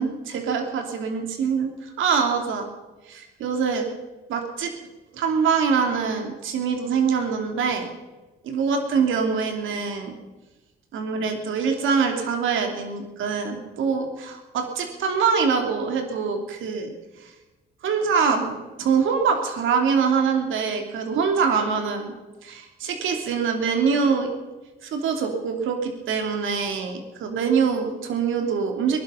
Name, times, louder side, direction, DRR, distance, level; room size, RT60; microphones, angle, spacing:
voice 1, 0.0-2.6 3.0-3.9 4.3-4.7 5.1-7.9 8.4-10.1 10.9-16.9 17.2-17.3 17.8-22.1 22.4-24.3 24.8-29.0, right 6 dB, 80° right, 3 dB, 3.0 m, -24 dB
22.0 x 11.5 x 5.7 m, 1.1 s
cardioid pair, 90°, 20 cm